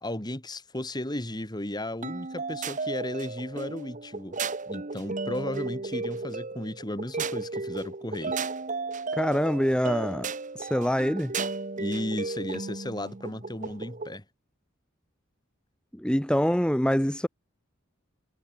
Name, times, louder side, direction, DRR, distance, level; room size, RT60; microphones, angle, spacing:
voice 1, 0.0-4.4 4.7-8.3 11.8-14.2, left 1 dB, 20° left, 2.9 m, -34 dB
sound 1, 2.0-14.2, right 3 dB, 35° right, 1.1 m, -34 dB
voice 2, 9.1-10.3 10.6-11.3 16.0-17.3, equal, 5° left, 2.1 m, -25 dB
head